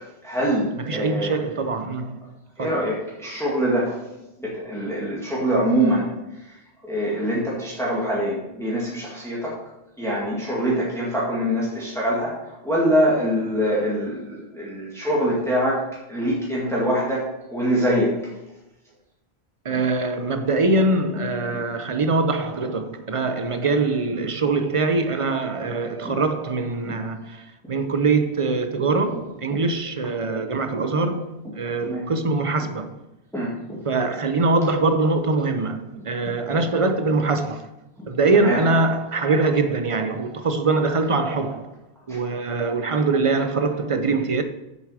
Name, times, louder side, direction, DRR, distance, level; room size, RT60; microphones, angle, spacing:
voice 1, 0.2-1.3 2.6-4.0 4.4-6.1 6.5-6.6 6.8-9.6 10.0-18.1 19.7-19.8 26.0-26.2 26.8-27.0 29.5-29.6 31.8-32.1 33.3-33.8 36.2-36.3 38.3-38.6 42.1-42.2, equal, 5° left, 2.0 m, -24 dB
voice 2, 0.9-2.3 2.6-2.7 19.6-32.9 33.8-37.7 38.1-41.7 42.1-44.4, right 3 dB, 35° right, 0.6 m, -23 dB
7.9 x 7.3 x 4.9 m
omnidirectional pair, 1.1 m